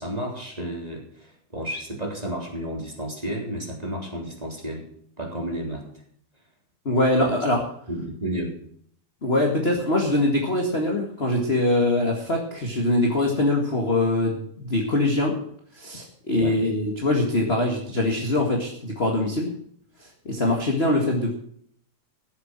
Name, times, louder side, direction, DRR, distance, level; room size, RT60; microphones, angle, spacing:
voice 1, 0.0-4.9 5.2-5.9 7.2-7.3 7.9-8.6 16.4-16.6, right 1 dB, 10° right, -1 dB, 3.4 m, -32 dB
voice 2, 6.9-7.6 9.2-15.4 15.7-19.5 20.3-21.3, left 1 dB, 25° left, 1 dB, 1.7 m, -23 dB
15.0 x 7.9 x 7.5 m, 0.64 s
omnidirectional pair, 3.5 m